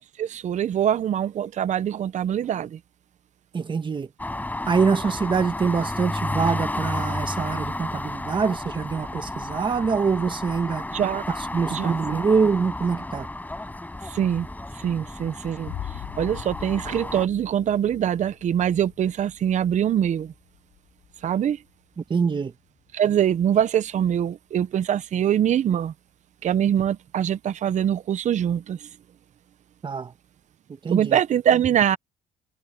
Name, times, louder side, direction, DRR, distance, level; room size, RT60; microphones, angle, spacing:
voice 1, 0.2-2.8 10.9-11.2 11.7-12.2 14.0-14.5 14.8-15.7 16.2-20.3 21.2-21.6 22.9-25.9 26.4-28.9 30.9-32.0, right 9 dB, 45° right, 0.8 m, -23 dB
voice 2, 3.5-4.1 4.7-10.8 11.3-13.3 22.0-22.5 29.8-30.1 30.8-31.2, right 5 dB, 30° right, 1.4 m, -24 dB
sound 1, 4.2-17.3, left 2 dB, 10° left, 6.7 m, -32 dB
sound 2, 15.6-23.0, left 13 dB, 75° left, 3.0 m, -42 dB
cardioid pair, 110°, 17 cm